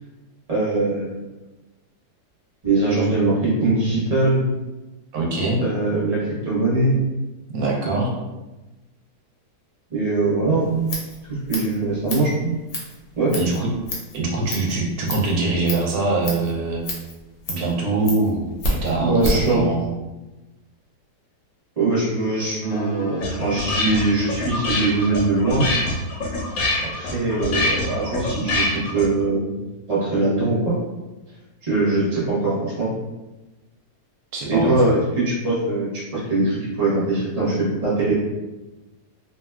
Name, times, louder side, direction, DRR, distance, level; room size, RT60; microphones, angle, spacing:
voice 1, 0.5-1.2 2.6-4.4 5.6-6.9 9.9-10.8 11.3-12.5 13.2-13.4 19.0-19.6 21.8-25.6 26.8-28.6 28.9-29.5 29.9-30.7 31.6-32.9 34.5-38.1, right 2 dB, 30° right, -7 dB, 0.8 m, -21 dB
voice 2, 5.1-5.6 7.5-8.1 13.3-13.7 14.1-16.8 17.5-19.9 34.3-34.9, right 3 dB, 75° right, -2 dB, 1.0 m, -23 dB
Scissors, 10.6-19.5, left 1 dB, 85° left, 1.3 m, -31 dB
sound 1, 22.6-29.2, left 2 dB, 70° left, 1.0 m, -25 dB
3.1 x 2.2 x 2.3 m, 1.1 s
omnidirectional pair, 1.7 m